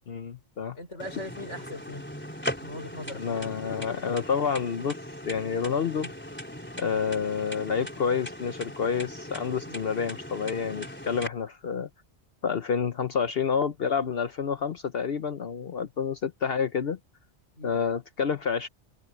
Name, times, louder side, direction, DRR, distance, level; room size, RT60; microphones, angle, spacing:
voice 1, 0.1-0.8 3.1-5.0 5.2-6.1 6.8-11.9 12.4-17.0 17.6-18.7, left 6 dB, 55° left, 1.0 m, -29 dB
voice 2, 0.7-2.0 2.6-3.4 6.0-6.1 9.7-9.9 17.6-17.8, left 1 dB, 75° left, 6.1 m, -40 dB
sound 1, 1.0-11.3, equal, 10° left, 3.8 m, -39 dB
omnidirectional pair, 1.2 m